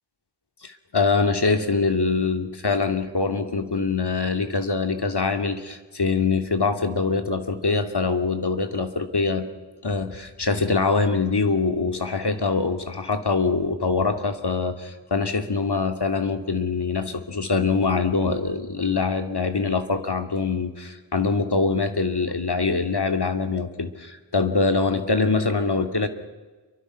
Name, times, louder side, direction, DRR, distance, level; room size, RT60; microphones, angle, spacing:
voice 1, 0.6-9.5 9.8-26.1, left 4 dB, 65° left, 7 dB, 2.4 m, -24 dB
28.0 x 24.0 x 5.8 m, 1.3 s
wide cardioid pair, 50°, 43 cm